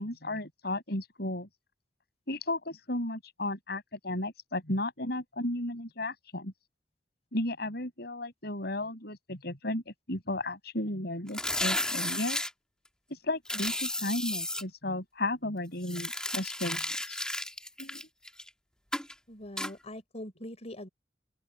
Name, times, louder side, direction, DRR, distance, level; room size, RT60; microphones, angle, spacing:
voice 1, 0.0-1.5 2.3-6.5 7.3-12.4 13.1-17.2 17.8-18.0, left 1 dB, 65° left, 6.8 m, -34 dB
sound 1, 11.3-12.5 13.4-14.6 15.8-18.5 18.9-19.1 19.6-19.7, left 1 dB, 5° left, 1.6 m, -33 dB
voice 2, 19.3-20.9, left 1 dB, 40° left, 4.5 m, -42 dB
open air
head